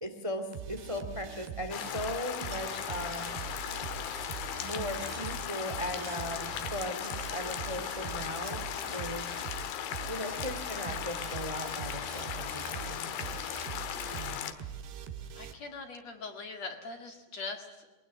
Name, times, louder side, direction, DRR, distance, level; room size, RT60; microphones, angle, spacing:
voice 1, 0.0-3.4 4.6-9.2 10.1-13.8 14.1-14.5, left 1 dB, 40° right, 6 dB, 0.4 m, -38 dB
sound 1, 0.5-15.5, right 8 dB, 70° right, 3.3 m, -43 dB
sound 2, 1.7-14.5, left 10 dB, 65° left, 3.0 m, -37 dB
sound 3, 2.3-8.6, right 6 dB, 90° right, 5.7 m, -56 dB
voice 2, 15.4-18.0, left 3 dB, 50° left, 6 dB, 2.3 m, -42 dB
23.0 x 19.0 x 8.8 m, 1.1 s
omnidirectional pair, 5.4 m